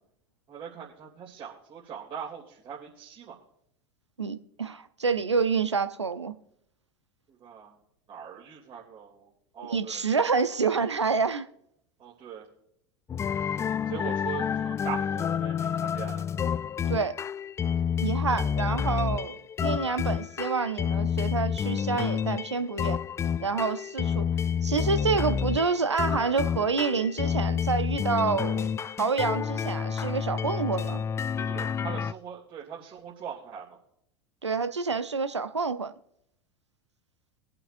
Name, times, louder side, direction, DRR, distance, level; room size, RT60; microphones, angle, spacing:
voice 1, 0.5-3.4 7.4-7.7 8.1-9.3 9.5-10.0 12.0-12.4 13.9-16.2 31.4-33.6, right 8 dB, 40° right, 2.9 m, -41 dB
voice 2, 4.2-6.3 9.6-11.5 16.9-17.1 18.0-23.0 23.4-24.3 24.6-28.7 29.0-31.0 34.4-35.9, right 5 dB, 90° right, 0.7 m, -28 dB
sound 1, 13.1-32.1, left 7 dB, 20° left, 0.3 m, -29 dB
23.0 x 7.9 x 2.6 m
figure-of-eight pair, 80°, 14 cm